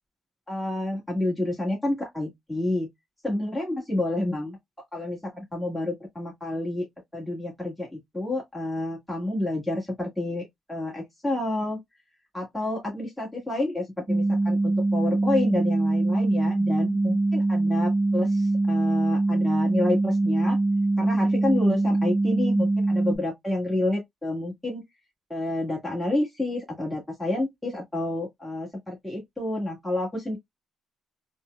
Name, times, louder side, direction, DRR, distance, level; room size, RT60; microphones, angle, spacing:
voice 1, 0.5-2.9 3.2-4.6 4.9-6.9 7.1-11.8 12.3-20.6 21.0-24.8 25.3-30.4, left 1 dB, 5° left, 1.6 m, -29 dB
sound 1, 14.1-23.2, right 2 dB, 15° right, 0.6 m, -23 dB
4.2 x 2.2 x 2.3 m
cardioid pair, 90°, 0 cm